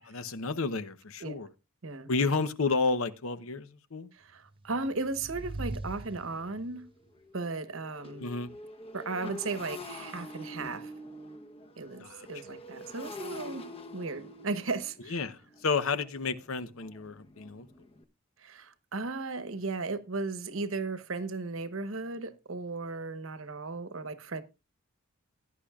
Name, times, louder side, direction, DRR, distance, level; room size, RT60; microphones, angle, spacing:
voice 1, 0.1-1.5 2.1-4.1 8.2-8.5 12.0-12.3 15.1-17.7, left 4 dB, 70° left, 0.8 m, -31 dB
voice 2, 4.1-6.8 7.3-8.3 8.9-10.9 11.8-13.7 13.9-15.2 18.4-24.4, right 3 dB, 65° right, 1.0 m, -36 dB
sound 1, 4.5-6.9, right 2 dB, 25° right, 0.5 m, -41 dB
Motorcycle, 5.4-5.5 6.0-6.2 6.4-18.0, left 1 dB, 25° left, 0.9 m, -46 dB
17.0 x 10.0 x 2.4 m
head